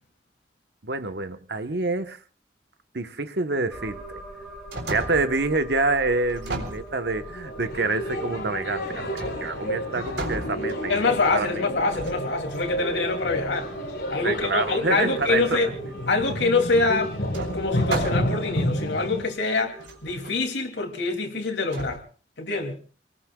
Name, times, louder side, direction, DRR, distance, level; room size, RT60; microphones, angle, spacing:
voice 1, 0.8-2.2 2.9-4.2 4.9-11.5 14.2-15.6, right 3 dB, 65° right, 1.1 m, -27 dB
sound 1, 3.7-20.4, right 2 dB, 5° right, 7.7 m, -44 dB
sound 2, 4.4-5.4 6.3-7.4 9.2-9.7 10.0-11.1 11.9-12.9 16.4-16.5 17.3-18.5 19.2-19.3 19.8-20.3 21.7-22.0, right 2 dB, 85° right, 3.6 m, -34 dB
sound 3, 7.2-19.2, equal, 55° left, 5.4 m, -30 dB
voice 2, 10.9-13.7 14.1-15.7 16.1-17.2 17.5-22.0 22.4-22.8, left 3 dB, 80° left, 2.6 m, -25 dB
29.0 x 19.5 x 2.3 m
head